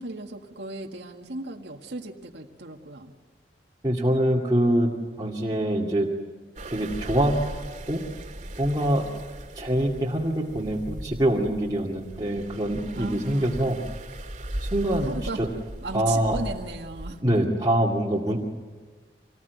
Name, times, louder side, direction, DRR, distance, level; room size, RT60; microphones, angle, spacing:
voice 1, 0.0-3.1 13.0-13.6 15.0-15.4 15.8-17.2, right 2 dB, 75° right, 1 dB, 1.9 m, -36 dB
voice 2, 3.8-4.9 5.2-6.1 6.7-7.3 7.9-8.0 8.6-9.0 9.6-13.8 14.6-15.1 15.4-15.5 15.9-16.4 17.2-18.4, right 1 dB, 25° right, -4 dB, 2.3 m, -24 dB
sound 1, 6.6-17.2, right 1 dB, 40° right, 2.3 m, -38 dB
26.5 x 19.5 x 9.4 m, 1.4 s
head